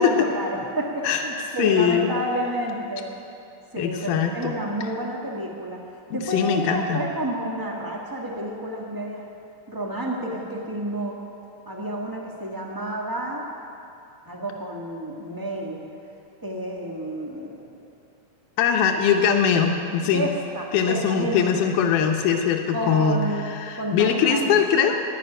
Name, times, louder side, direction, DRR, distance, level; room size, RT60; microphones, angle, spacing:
voice 1, 0.0-3.1 3.7-5.8 6.1-9.2 9.7-11.2 11.6-13.4 14.2-15.8 16.4-17.8 18.9-19.0 20.1-21.5 22.7-23.5 23.8-24.6, right 1 dB, 15° right, -2 dB, 0.7 m, -30 dB
voice 2, 1.6-2.1 3.8-4.5 6.1-7.0 18.6-20.3 20.7-25.0, left 7 dB, 85° left, 3 dB, 2.5 m, -22 dB
18.5 x 6.2 x 9.9 m, 2.6 s
omnidirectional pair, 3.5 m